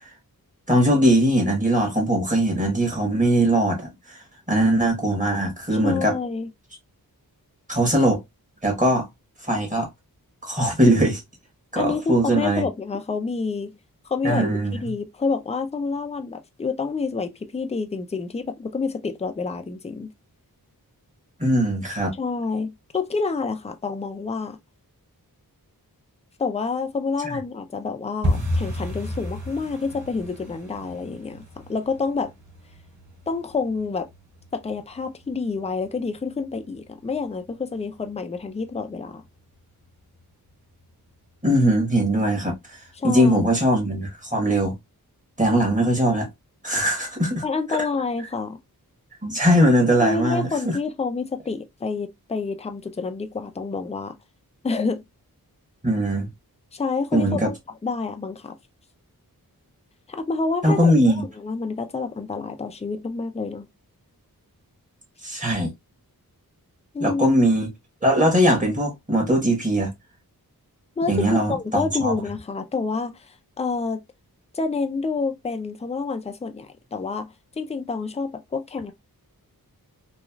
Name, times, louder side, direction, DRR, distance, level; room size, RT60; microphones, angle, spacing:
voice 1, 0.7-4.2 4.5-6.2 7.7-8.2 8.6-9.1 9.5-9.9 10.4-11.2 11.7-12.7 14.2-14.9 21.4-22.1 27.2-27.4 41.4-42.8 43.0-44.8 45.4-46.3 46.6-47.4 47.7-47.8 49.2-50.8 55.8-56.3 57.1-57.5 60.6-61.2 65.2-65.7 67.0-67.7 68.0-69.9 71.1-72.1, right 1 dB, 20° right, 1.3 m, -20 dB
voice 2, 5.8-6.5 11.8-13.8 14.1-14.5 14.8-20.1 22.1-24.6 26.4-32.3 33.3-34.1 34.5-39.2 43.0-43.5 47.4-48.6 50.0-54.1 54.6-55.0 56.7-57.6 57.8-58.5 60.1-63.7 66.9-67.4 71.0-74.0 74.5-78.9, left 4 dB, 20° left, 0.4 m, -28 dB
sound 1, 28.2-39.0 39.2-39.9 40.2-40.5 40.7-41.1 41.4-41.5 42.0-42.5 42.9-43.0 43.5-43.6, left 1 dB, 45° right, 1.7 m, -33 dB
3.1 x 2.4 x 2.3 m
wide cardioid pair, 80°, 37 cm